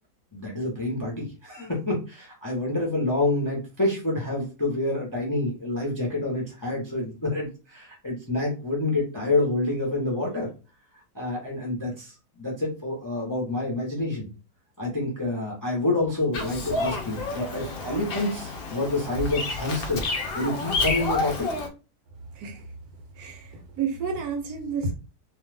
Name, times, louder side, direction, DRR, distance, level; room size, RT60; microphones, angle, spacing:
voice 1, 0.3-10.5 11.1-14.3 14.8-20.1 20.3-21.5, left 2 dB, 20° left, 0.5 m, -28 dB
Bird vocalization bird call bird song, 16.3-21.7, left 3 dB, 70° left, 0.5 m, -30 dB
voice 2, 22.3-22.7 23.1-24.9, right 5 dB, 70° right, 1.1 m, -31 dB
2.6 x 2.4 x 3.3 m
omnidirectional pair, 1.8 m